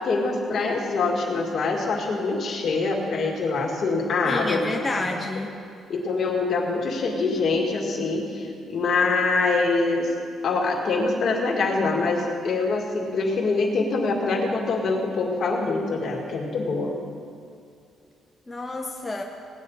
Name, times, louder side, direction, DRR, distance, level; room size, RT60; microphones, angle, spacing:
voice 1, 0.0-4.7 5.0-5.1 5.9-10.1 10.4-16.9, left 3 dB, 55° left, 0 dB, 2.3 m, -24 dB
voice 2, 4.2-5.5 18.5-19.2, left 2 dB, 20° left, 1 dB, 1.0 m, -29 dB
18.5 x 9.8 x 4.1 m, 2.4 s
cardioid pair, 90°, 0 cm